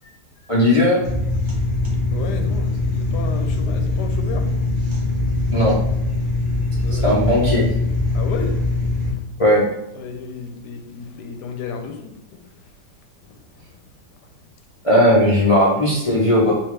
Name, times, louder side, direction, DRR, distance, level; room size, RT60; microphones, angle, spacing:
voice 1, 0.5-1.0 5.5-5.7 7.0-7.6 9.4-9.6 14.8-16.5, left 1 dB, 60° left, -7 dB, 0.3 m, -16 dB
sound 1, 1.0-9.1, left 2 dB, 25° right, 0.6 m, -22 dB
voice 2, 2.1-4.5 6.7-7.2 8.1-8.6 9.9-12.4, left 6 dB, 75° left, 5 dB, 1.1 m, -32 dB
3.5 x 2.8 x 3.2 m, 0.85 s
omnidirectional pair, 1.9 m